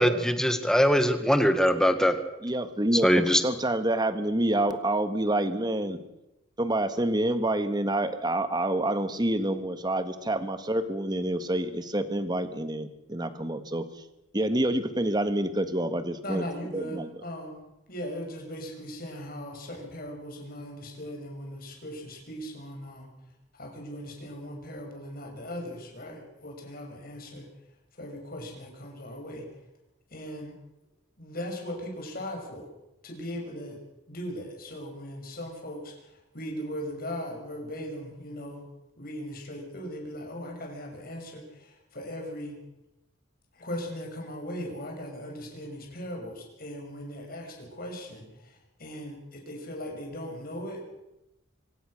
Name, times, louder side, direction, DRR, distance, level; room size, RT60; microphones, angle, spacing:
voice 1, 0.0-2.1 3.0-3.4, equal, 5° left, 9 dB, 1.4 m, -22 dB
voice 2, 2.4-6.0 6.6-13.9 14.3-16.4 16.7-17.1, right 1 dB, 20° right, 10 dB, 1.6 m, -27 dB
voice 3, 16.2-23.1 23.5-27.5 27.9-29.5 30.1-30.5 31.2-32.7 33.0-38.7 39.0-42.6 43.5-50.8, equal, 50° left, 2 dB, 6.4 m, -39 dB
25.0 x 17.5 x 6.6 m, 0.92 s
head